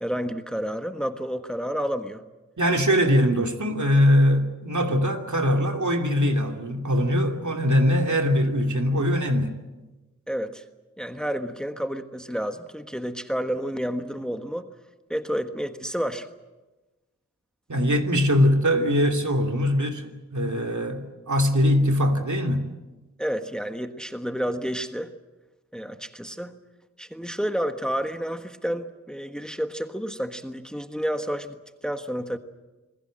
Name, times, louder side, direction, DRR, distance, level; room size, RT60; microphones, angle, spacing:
voice 1, 0.0-2.2 10.3-10.6 11.0-14.7 15.1-16.3 23.2-25.1 25.7-26.5 27.0-31.6 31.8-32.4, equal, ahead, 7 dB, 1.4 m, -30 dB
voice 2, 2.6-9.6 17.7-22.7, equal, 70° right, 3 dB, 2.8 m, -22 dB
27.0 x 20.5 x 7.7 m, 1.1 s
wide cardioid pair, 65°, 30 cm